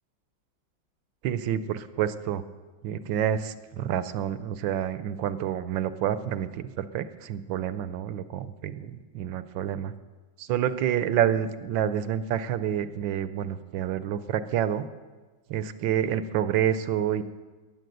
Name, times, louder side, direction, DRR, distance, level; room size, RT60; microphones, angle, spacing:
voice 1, 1.2-2.4 2.8-9.9 10.4-14.9 15.5-17.2, right 10 dB, 70° right, 13 dB, 1.3 m, -28 dB
14.5 x 9.9 x 7.8 m, 1.3 s
omnidirectional pair, 2.3 m